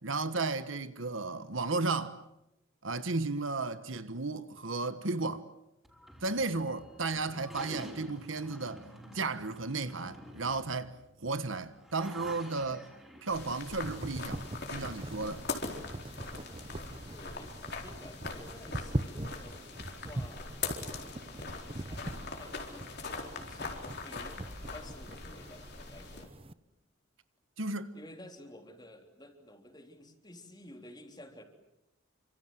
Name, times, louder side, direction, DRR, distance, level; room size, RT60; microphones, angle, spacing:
voice 1, 0.0-2.2 2.8-5.5 6.2-8.8 9.1-12.9 13.2-14.4 14.7-15.4 27.6-27.9, right 3 dB, 65° right, 1.4 m, -34 dB
sound 1, 5.8-13.6, equal, ahead, 5.6 m, -50 dB
voice 2, 7.1-7.4 17.1-17.5 17.8-19.7 20.0-20.5 21.3-26.3 27.9-31.4, left 1 dB, 20° left, 3.5 m, -52 dB
sound 2, 13.3-26.2, left 4 dB, 55° left, 4.3 m, -42 dB
sound 3, 13.3-26.5, right 1 dB, 30° right, 0.9 m, -42 dB
29.0 x 26.0 x 7.8 m
head